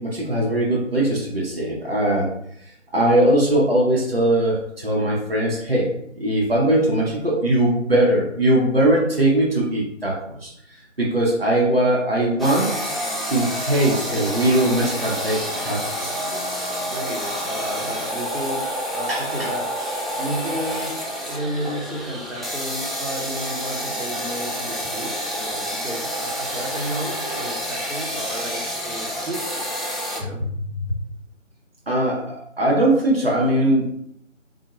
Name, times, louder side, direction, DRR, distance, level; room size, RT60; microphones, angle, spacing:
voice 1, 0.0-2.3 2.9-5.9 6.1-10.5 10.8-12.7 13.3-16.4 19.1-19.5 31.9-33.9, right 1 dB, 50° right, -3 dB, 0.7 m, -20 dB
sound 1, 12.4-30.2, equal, ahead, 0.4 m, -28 dB
voice 2, 16.9-18.6 18.9-19.7 20.2-20.9 21.2-29.6 30.1-31.0, equal, 80° right, 0 dB, 1.0 m, -32 dB
3.7 x 2.1 x 2.9 m, 0.72 s
figure-of-eight pair, 175°, 39 cm